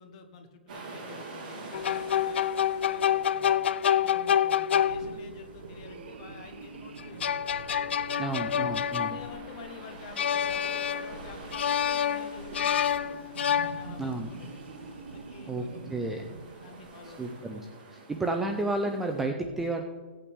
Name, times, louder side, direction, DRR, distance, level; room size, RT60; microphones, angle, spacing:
voice 1, 0.0-3.6 3.9-7.5 8.2-8.6 9.0-14.8 15.1-15.9 16.6-17.6, left 4 dB, 35° left, 5 dB, 1.2 m, -49 dB
sound 1, 0.7-19.2, right 3 dB, 40° right, 3.0 m, -48 dB
sound 2, 1.7-5.4 7.0-9.7 10.2-11.2 11.5-14.2, left 9 dB, 70° left, 0.4 m, -28 dB
sound 3, 4.8-17.3, right 4 dB, 65° right, 1.0 m, -46 dB
voice 2, 8.2-9.2 14.0-14.3 15.5-16.2 17.0-17.6 17.9-19.8, right 2 dB, 5° right, 3 dB, 0.4 m, -31 dB
16.5 x 8.5 x 3.5 m, 1.4 s
hypercardioid pair, 175°, 6 cm